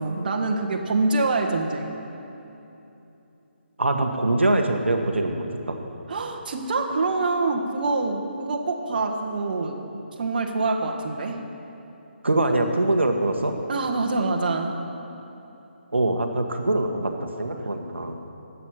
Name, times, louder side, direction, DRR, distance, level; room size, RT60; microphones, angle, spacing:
voice 1, 0.0-1.9 6.1-9.8 10.2-11.4 13.7-14.8, right 3 dB, 50° right, 3 dB, 1.4 m, -25 dB
voice 2, 3.8-5.8 12.2-13.5 15.9-18.2, right 2 dB, 90° right, 4 dB, 1.2 m, -23 dB
9.8 x 8.4 x 9.2 m, 2.9 s
figure-of-eight pair, 150°, 6 cm